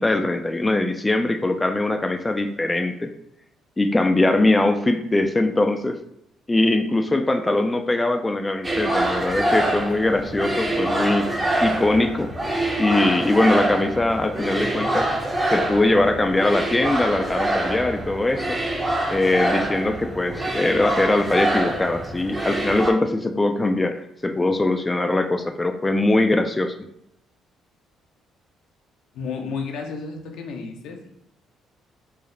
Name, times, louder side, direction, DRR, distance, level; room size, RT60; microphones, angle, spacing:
voice 1, 0.0-3.1 3.8-6.0 6.5-11.3 11.6-12.3 12.8-15.1 15.5-18.6 19.1-26.7, left 2 dB, 20° left, 6 dB, 0.3 m, -21 dB
sound 1, 8.6-22.9, right 1 dB, 15° right, 0.7 m, -25 dB
voice 2, 29.1-31.1, left 5 dB, 75° left, 2 dB, 0.6 m, -32 dB
4.7 x 2.0 x 3.2 m, 0.74 s
cardioid pair, 85°, 0 cm